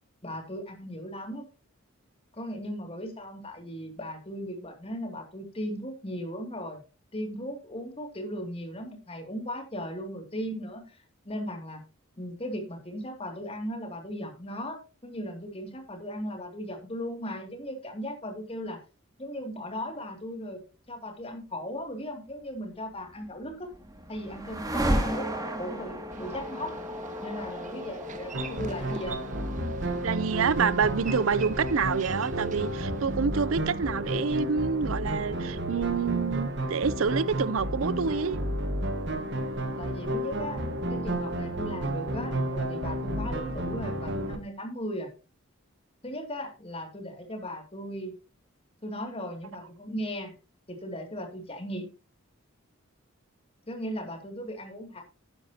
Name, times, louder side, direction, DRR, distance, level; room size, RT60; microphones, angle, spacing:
voice 1, 0.2-1.5 2.3-6.8 7.1-11.8 12.2-18.8 19.2-20.6 20.9-23.7 24.1-25.3 25.6-26.7 27.2-29.2 39.8-40.6 40.9-45.1 46.0-48.1 48.8-50.3 50.7-51.9 53.7-55.0, equal, 30° left, 2.5 m, -37 dB
sound 1, 23.3-33.3, equal, 15° right, 2.0 m, -35 dB
Boat Water vehicle, 26.1-33.2, right 3 dB, 35° right, 1.2 m, -43 dB
sound 2, 28.3-44.4, right 1 dB, 55° right, 1.5 m, -31 dB
voice 2, 30.0-38.4, right 5 dB, 80° right, 0.6 m, -27 dB
11.5 x 9.9 x 2.8 m
head